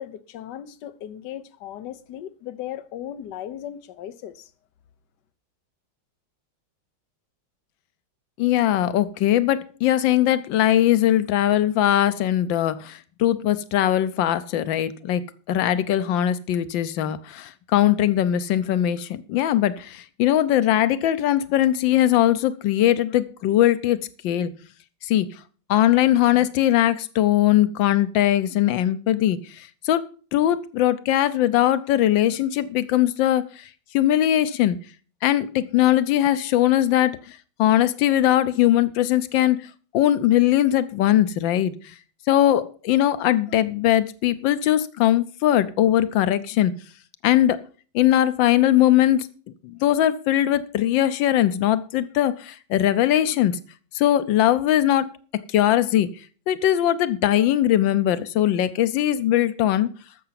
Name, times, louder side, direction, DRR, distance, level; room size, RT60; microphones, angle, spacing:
voice 1, 0.0-4.5, left 11 dB, 70° left, 1.4 m, -37 dB
voice 2, 8.4-15.2 15.5-24.5 25.0-25.3 25.7-30.1 30.3-34.8 35.2-39.7 39.9-41.9 42.3-46.7 47.2-47.6 47.9-49.3 49.6-53.6 53.9-56.1 56.5-59.9, left 12 dB, 90° left, 1.5 m, -20 dB
13.5 x 6.9 x 5.8 m
omnidirectional pair, 2.0 m